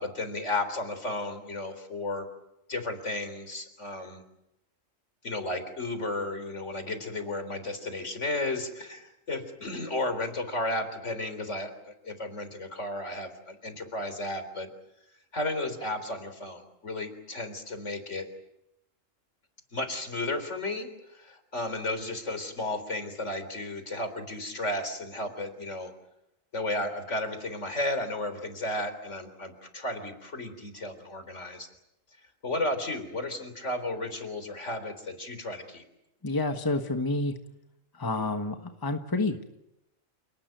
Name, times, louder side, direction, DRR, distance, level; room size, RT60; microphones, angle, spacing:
voice 1, 0.0-2.3 2.7-4.2 5.2-14.7 15.3-18.3 19.7-25.9 26.5-31.7 32.4-35.8, left 2 dB, 65° left, 9 dB, 4.1 m, -33 dB
voice 2, 36.2-37.3 37.9-38.6 38.8-39.6, left 2 dB, 15° left, 6 dB, 1.4 m, -29 dB
28.5 x 19.0 x 9.3 m, 0.86 s
omnidirectional pair, 1.3 m